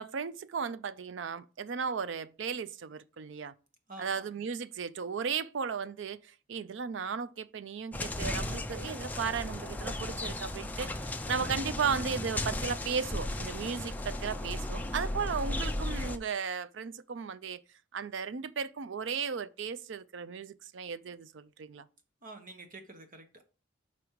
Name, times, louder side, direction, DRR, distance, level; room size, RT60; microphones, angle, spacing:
voice 1, 0.0-3.5 4.0-17.6 17.9-21.9, right 6 dB, 65° right, 0.4 m, -35 dB
voice 2, 3.9-4.3 22.2-23.4, right 2 dB, 45° right, 1.2 m, -48 dB
sound 1, 7.9-16.2, left 1 dB, 10° left, 0.4 m, -35 dB
6.0 x 5.0 x 4.6 m
head